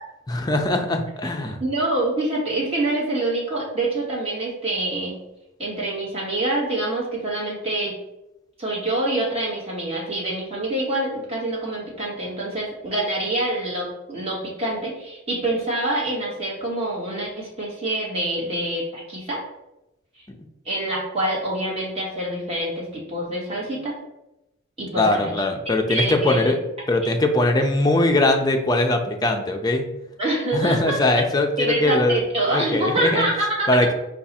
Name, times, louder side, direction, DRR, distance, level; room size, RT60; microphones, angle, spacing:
voice 1, 0.3-1.6 24.9-26.6 26.9-29.8 30.5-32.2 32.5-33.3 33.7-33.9, left 2 dB, 20° left, 3 dB, 0.4 m, -21 dB
voice 2, 1.6-5.2 5.6-8.0 8.6-19.4 20.2-20.3 20.6-23.9 24.8-25.3 25.9-26.5 27.0-27.1 30.2-31.0 31.6-33.7, right 1 dB, 30° right, -5 dB, 1.5 m, -26 dB
4.6 x 2.4 x 4.1 m, 0.91 s
head